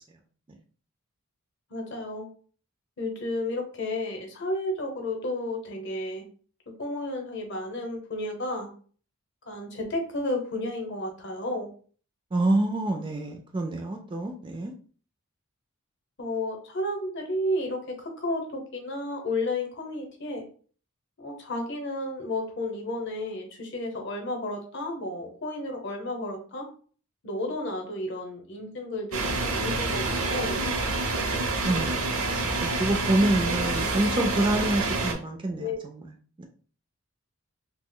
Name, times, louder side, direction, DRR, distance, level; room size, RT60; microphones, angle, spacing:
voice 1, 1.7-2.3 3.0-6.2 6.8-8.7 9.5-11.7 16.2-20.5 21.2-26.7 27.2-30.6 35.6-35.8, left 1 dB, 50° left, 2 dB, 0.7 m, -32 dB
voice 2, 12.3-14.7 31.6-32.4 32.8-36.0 36.4-36.5, right 1 dB, 20° right, 3 dB, 0.3 m, -27 dB
sound 1, 29.1-35.1, right 3 dB, 70° right, 0.6 m, -27 dB
2.8 x 2.1 x 3.7 m, 0.43 s
head